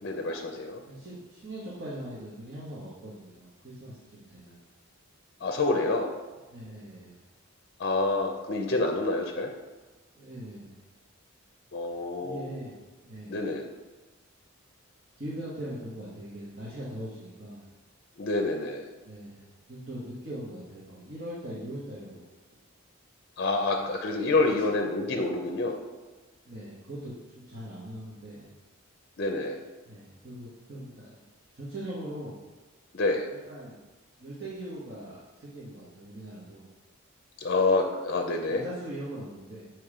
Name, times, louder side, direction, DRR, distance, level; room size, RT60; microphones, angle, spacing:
voice 1, 0.0-0.8 5.4-6.1 7.8-9.5 11.7-12.5 13.3-13.7 18.2-18.9 23.4-25.8 29.2-29.6 32.9-33.2 37.4-38.6, left 2 dB, 50° left, 3 dB, 0.5 m, -27 dB
voice 2, 0.9-4.6 6.5-7.2 10.1-10.7 12.2-12.8 13.0-13.4 15.2-17.6 19.0-22.3 26.4-28.5 29.9-31.2 31.5-32.4 33.3-33.8 34.2-36.7 38.5-39.7, right 1 dB, 50° right, -7 dB, 1.2 m, -41 dB
7.0 x 3.1 x 4.8 m, 1.2 s
head